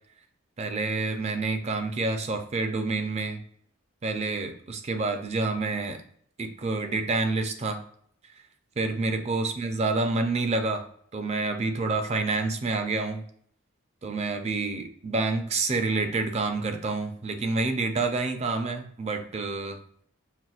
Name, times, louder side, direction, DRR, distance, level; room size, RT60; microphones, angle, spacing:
voice 1, 0.6-3.4 4.0-6.0 6.4-7.8 8.8-10.8 11.1-13.2 14.0-19.8, right 3 dB, 30° right, 6 dB, 0.4 m, -28 dB
5.7 x 2.4 x 2.4 m, 0.63 s
head